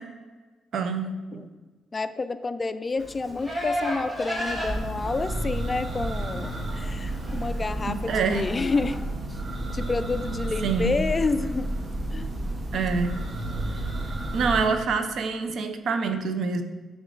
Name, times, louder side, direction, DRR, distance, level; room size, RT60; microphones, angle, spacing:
voice 1, 0.7-1.4 7.9-8.5 10.6-11.0 12.7-13.1 14.3-16.6, right 5 dB, 65° right, 8 dB, 0.6 m, -26 dB
voice 2, 1.9-9.0 9.3-9.4 9.7-11.7 12.1-12.3, left 3 dB, 30° left, 12 dB, 0.3 m, -29 dB
Livestock farm animals working animals, 3.0-9.0, equal, 10° right, 1.5 m, -35 dB
Church bell, 4.4-14.7, right 1 dB, 40° right, 1.0 m, -31 dB
9.4 x 3.8 x 3.8 m, 1.3 s
cardioid pair, 95°, 0 cm